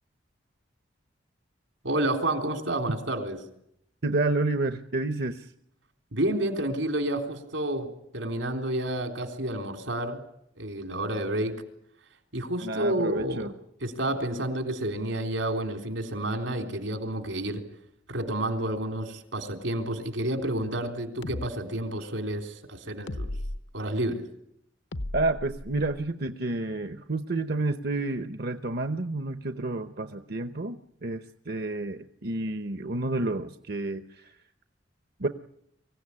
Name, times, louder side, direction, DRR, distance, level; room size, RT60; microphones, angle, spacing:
voice 1, 1.8-3.4 6.1-7.9 8.1-10.2 10.6-11.6 12.3-13.5 13.8-17.6 18.1-23.3 23.7-24.3, right 1 dB, 85° right, 6 dB, 3.7 m, -30 dB
voice 2, 4.0-5.5 12.6-13.5 25.1-34.4 35.2-35.3, right 2 dB, 55° right, 9 dB, 0.9 m, -30 dB
sound 1, 21.2-21.5 23.1-23.6 24.9-26.1, left 1 dB, 70° left, 0.9 m, -35 dB
24.5 x 16.5 x 9.9 m, 0.75 s
head